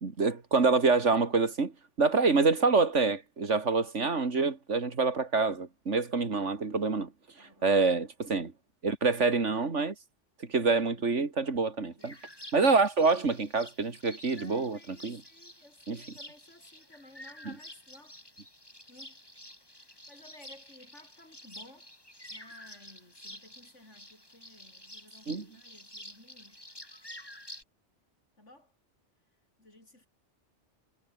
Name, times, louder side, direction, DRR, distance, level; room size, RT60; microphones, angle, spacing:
voice 1, 0.0-7.1 7.4-8.5 8.8-9.9 10.5-12.2 12.5-15.2 15.9-16.0 17.4-17.5 25.3-25.5, right 4 dB, 85° right, 2.7 m, -26 dB
voice 2, 5.9-6.4 7.4-7.7 10.6-11.1 11.8-12.2 14.3-18.2 18.9-19.2 19.7-21.9 22.3-26.6 28.4-28.7 29.6-30.1, left 1 dB, 90° left, 7.8 m, -56 dB
sound 1, 12.0-27.6, left 1 dB, 20° left, 5.4 m, -50 dB
omnidirectional pair, 1.2 m